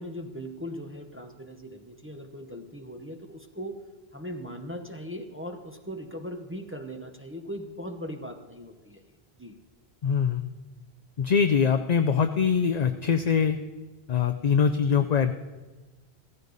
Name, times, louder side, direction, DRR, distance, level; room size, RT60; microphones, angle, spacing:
voice 1, 0.0-3.8 4.1-9.0 9.4-9.6, equal, 15° right, 4 dB, 0.8 m, -39 dB
voice 2, 10.0-10.5 11.2-13.6 14.1-15.3, left 6 dB, 50° left, 6 dB, 0.6 m, -23 dB
15.0 x 14.5 x 4.0 m, 1.3 s
omnidirectional pair, 1.0 m